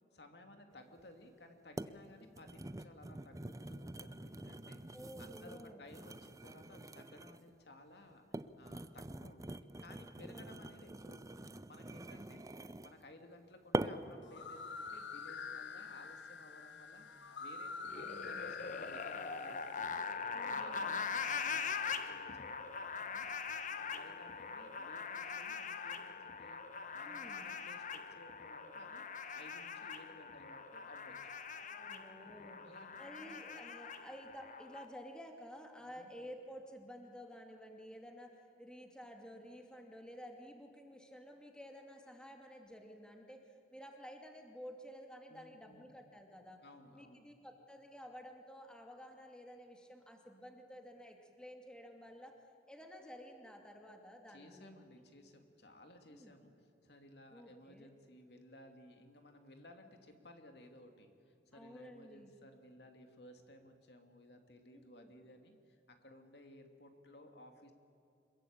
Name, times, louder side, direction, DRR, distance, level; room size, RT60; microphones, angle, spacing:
voice 1, 0.1-4.8 5.2-17.1 17.4-19.9 20.3-23.3 23.7-26.6 26.9-29.0 29.3-31.1 32.2-33.3 35.8-36.1 45.3-46.0 46.6-47.3 54.3-67.7, left 1 dB, 65° left, 5 dB, 2.6 m, -58 dB
sound 1, 1.0-1.1 1.8-2.0 2.3-7.5 8.1-13.0 13.7-14.2 14.7-14.9, right 1 dB, 20° right, 0.7 m, -44 dB
voice 2, 4.9-5.8 10.3-10.5 10.8-10.9 17.9-18.8 20.3-21.0 27.0-27.5 31.6-32.6 33.0-38.3 38.6-46.6 46.9-52.3 52.7-54.8 56.1-56.4 57.3-57.9 61.5-62.3 64.7-65.1, equal, 5° left, 2 dB, 2.5 m, -52 dB
sound 2, 14.2-20.0, left 5 dB, 85° left, 1.5 m, -47 dB
sound 3, 17.8-34.8, left 5 dB, 45° left, 1.2 m, -42 dB
26.5 x 22.0 x 8.8 m, 2.6 s
head